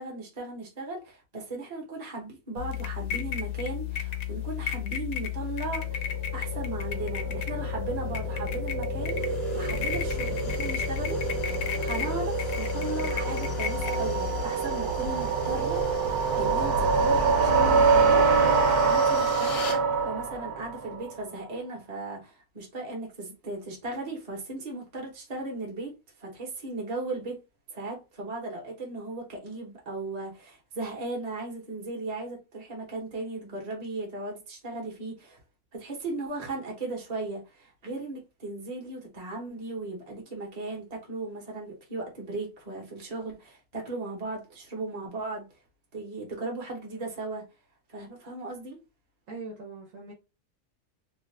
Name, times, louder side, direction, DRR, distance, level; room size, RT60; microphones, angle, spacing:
voice 1, 0.0-11.2 11.5-16.0 16.4-18.3 18.9-25.9 26.2-27.4 27.7-35.4 35.7-45.4 45.9-47.4 47.9-48.8, right 2 dB, 30° right, 1.0 m, -37 dB
sound 1, 2.6-14.4, left 11 dB, 80° left, 1.0 m, -33 dB
sound 2, 5.9-21.2, right 4 dB, 85° right, 1.2 m, -26 dB
sound 3, 9.0-19.8, left 4 dB, 60° left, 0.7 m, -43 dB
voice 2, 49.3-50.1, right 3 dB, 60° right, 1.1 m, -41 dB
2.8 x 2.3 x 3.2 m
omnidirectional pair, 1.6 m